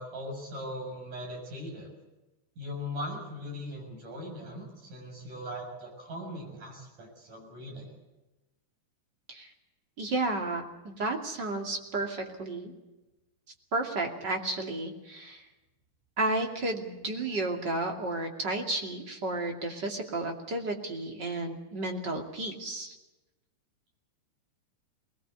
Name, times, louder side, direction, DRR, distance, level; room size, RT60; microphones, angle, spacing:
voice 1, 0.0-1.9 2.6-7.9, left 1 dB, 75° right, 1 dB, 8.3 m, -39 dB
voice 2, 10.0-12.7 13.7-15.4 16.2-22.9, right 2 dB, 35° right, 3 dB, 2.9 m, -32 dB
21.0 x 20.0 x 8.3 m, 1.0 s
omnidirectional pair, 3.8 m